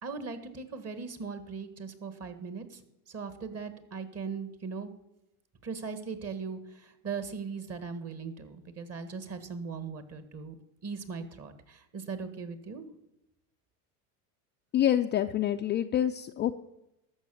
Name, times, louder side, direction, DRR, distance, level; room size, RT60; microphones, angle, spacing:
voice 1, 0.0-2.8 3.1-4.9 5.6-10.5 10.8-12.8, right 5 dB, 35° right, 11 dB, 1.6 m, -39 dB
voice 2, 14.7-16.5, left 11 dB, 25° left, 6 dB, 0.4 m, -27 dB
12.5 x 6.6 x 8.3 m, 0.89 s
supercardioid pair, 105°, 45 cm